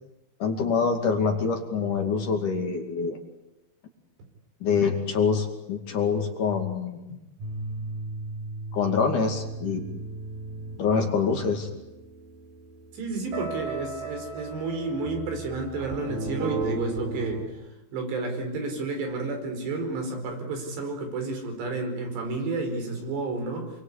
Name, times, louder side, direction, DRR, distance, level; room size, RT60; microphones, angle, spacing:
voice 1, 0.4-3.2 4.6-7.0 8.7-9.8 10.8-11.7, left 5 dB, 50° left, 4 dB, 3.7 m, -25 dB
sound 1, 7.4-17.5, right 3 dB, 60° right, 5.6 m, -36 dB
voice 2, 12.9-17.4 17.9-23.7, right 3 dB, 75° right, 4 dB, 6.9 m, -31 dB
28.0 x 24.0 x 8.5 m, 0.96 s
omnidirectional pair, 4.9 m